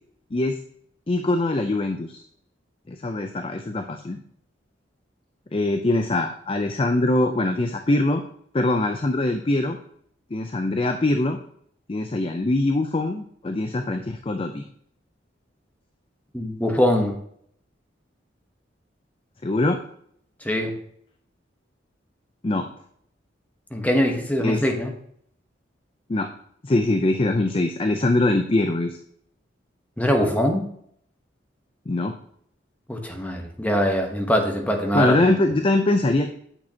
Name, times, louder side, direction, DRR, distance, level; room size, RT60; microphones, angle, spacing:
voice 1, 1.1-2.2 2.9-4.2 5.5-8.2 8.5-9.8 10.3-11.4 11.9-14.6 19.4-19.8 22.4-22.7 24.4-24.6 26.1-26.3 26.6-29.0 31.9-32.2 34.9-36.3, left 2 dB, 30° left, 6 dB, 0.5 m, -22 dB
voice 2, 16.3-17.2 20.4-20.8 23.7-24.9 30.0-30.6 32.9-35.1, equal, 10° left, 3 dB, 1.0 m, -22 dB
8.8 x 6.3 x 2.8 m, 0.66 s
head